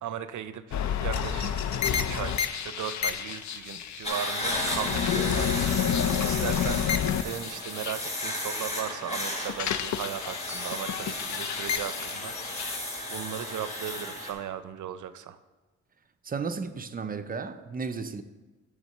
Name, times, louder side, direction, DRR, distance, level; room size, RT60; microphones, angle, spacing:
voice 1, 0.0-5.6 6.3-6.8 7.2-12.4 13.1-15.4, right 9 dB, 85° right, 0.6 m, -37 dB
sound 1, 0.7-8.7 9.0-12.8, left 8 dB, 70° left, 0.5 m, -30 dB
sound 2, 4.0-14.3, left 1 dB, 20° left, 1.6 m, -34 dB
voice 2, 16.2-18.2, right 5 dB, 30° right, 0.4 m, -34 dB
10.5 x 3.6 x 6.5 m
wide cardioid pair, 150°, 29 cm